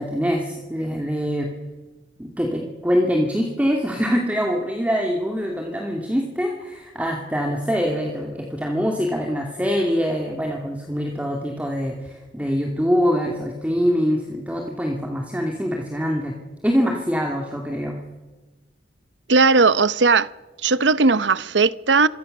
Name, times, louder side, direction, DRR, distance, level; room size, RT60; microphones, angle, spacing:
voice 1, 0.0-1.5 2.2-16.4 16.6-18.0, equal, 10° right, 2.6 m, -24 dB
voice 2, 19.3-20.3 20.6-22.1, right 4 dB, 85° right, 0.9 m, -17 dB
27.0 x 23.0 x 6.8 m
head